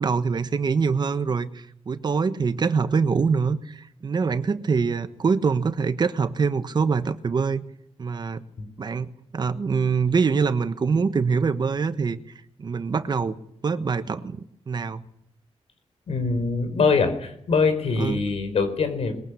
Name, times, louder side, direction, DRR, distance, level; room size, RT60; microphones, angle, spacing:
voice 1, 0.0-7.6 8.0-8.4 8.8-9.1 9.3-12.2 12.6-13.4 13.6-14.4 14.7-15.1 18.0-18.2, right 5 dB, 40° right, 12 dB, 1.2 m, -24 dB
voice 2, 16.1-19.1, left 4 dB, 75° left, 9 dB, 4.7 m, -23 dB
22.0 x 21.5 x 8.5 m, 0.72 s
wide cardioid pair, 150°, 11 cm